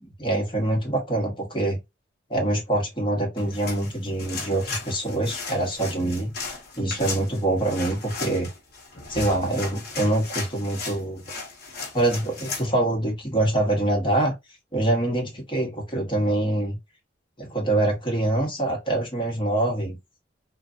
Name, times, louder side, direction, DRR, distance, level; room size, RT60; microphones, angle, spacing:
voice 1, 0.2-1.8 2.3-6.3 6.8-8.5 9.1-11.2 11.9-14.3 14.7-16.8 17.4-20.0, right 1 dB, 30° left, 1.2 m, -25 dB
sound 1, 3.4-12.7, left 4 dB, 60° left, 0.9 m, -36 dB
3.2 x 2.3 x 2.5 m
head